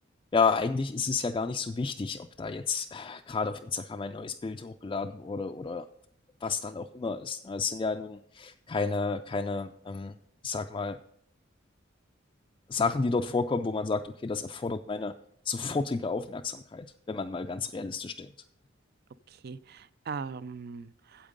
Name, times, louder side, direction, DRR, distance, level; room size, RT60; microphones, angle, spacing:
voice 1, 0.3-5.8 6.4-10.1 10.4-11.0 12.7-15.1 15.4-18.3, left 4 dB, 25° left, 4 dB, 0.3 m, -31 dB
voice 2, 19.3-21.3, right 5 dB, 50° right, 17 dB, 0.4 m, -40 dB
8.7 x 8.1 x 5.3 m, 0.72 s
head